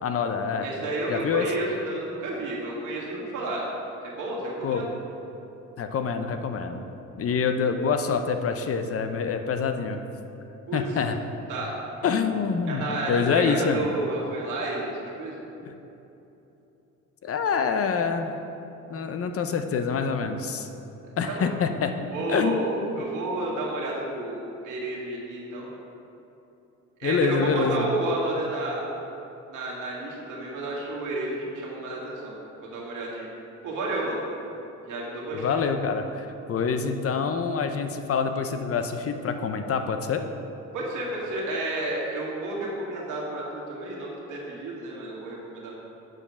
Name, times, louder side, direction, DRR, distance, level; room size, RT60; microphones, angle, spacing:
voice 1, 0.0-0.7 1.1-1.5 4.6-4.9 5.8-6.8 7.2-10.0 10.7-11.2 12.0-13.9 15.7-15.8 17.2-18.4 18.9-20.7 21.2-22.0 22.3-22.6 22.9-23.0 27.0-27.9 35.3-40.2, left 5 dB, 50° left, 7 dB, 0.6 m, -26 dB
voice 2, 0.6-3.6 4.0-4.9 10.7-11.0 11.5-11.7 12.7-15.4 21.3-21.5 22.1-25.7 27.0-28.8 29.5-32.3 32.6-33.3 33.6-34.2 34.8-35.6 40.7-45.8, right 2 dB, 85° right, -4 dB, 1.9 m, -31 dB
7.8 x 4.9 x 5.8 m, 3.0 s
cardioid pair, 90°, 30 cm